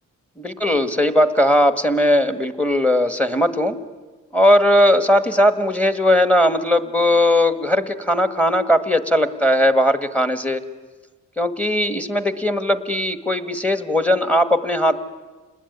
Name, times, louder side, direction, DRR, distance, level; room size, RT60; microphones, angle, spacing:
voice 1, 0.4-3.8 4.3-10.6 11.4-15.0, left 1 dB, 5° left, 10 dB, 1.6 m, -18 dB
28.5 x 20.0 x 9.6 m, 1.3 s
cardioid pair, 105°, 30 cm